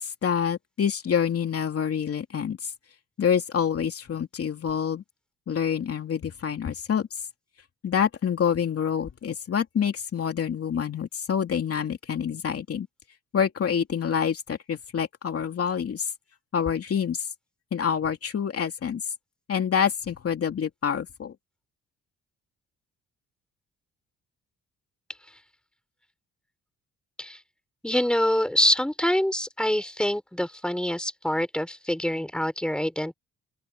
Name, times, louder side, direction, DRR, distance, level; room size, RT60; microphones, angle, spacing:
voice 1, 0.0-2.7 3.2-5.0 5.5-7.2 7.8-12.9 13.3-16.1 16.5-17.3 17.7-19.1 19.5-21.3, left 7 dB, 50° left, 2.9 m, -27 dB
voice 2, 27.8-33.1, equal, 5° left, 5.3 m, -25 dB
open air
cardioid pair, 90°, 30 cm